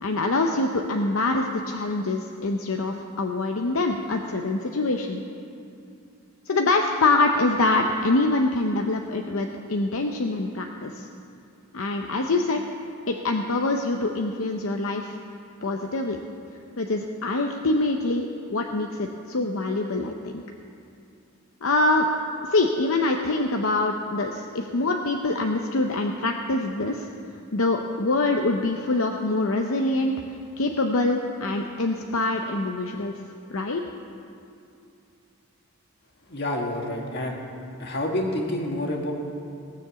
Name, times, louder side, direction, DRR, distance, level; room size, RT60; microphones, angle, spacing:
voice 1, 0.0-5.2 6.5-11.1 11.7-12.6 13.1-15.1 15.6-16.2 16.8-20.4 21.6-22.1 22.4-27.1 27.5-30.1 30.6-33.1 33.5-33.9, left 2 dB, 75° left, 3 dB, 0.7 m, -25 dB
voice 2, 36.3-37.4 37.8-39.1, left 1 dB, 50° left, 1 dB, 1.7 m, -28 dB
17.5 x 7.2 x 7.0 m, 2.5 s
head